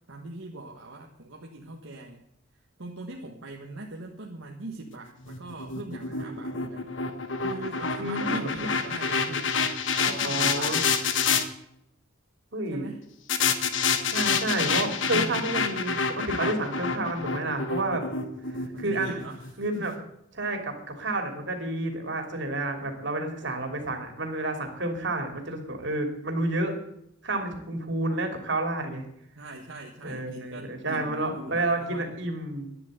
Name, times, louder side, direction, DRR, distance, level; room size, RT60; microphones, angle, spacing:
voice 1, 0.1-2.2 2.8-6.9 7.4-9.5 10.1-10.8 12.7-13.0 15.1-15.5 18.7-20.0 29.3-32.2, right 2 dB, 75° right, 0 dB, 1.5 m, -40 dB
sound 1, 5.2-11.4 13.3-19.5, left 5 dB, 65° left, 1.2 m, -28 dB
voice 2, 8.0-8.5 10.0-10.8 12.5-12.9 14.1-18.0 18.8-19.1 19.6-19.9 20.4-26.7 27.2-29.0 30.0-32.7, right 2 dB, 60° right, 4 dB, 2.9 m, -30 dB
11.5 x 10.5 x 8.0 m, 0.78 s
head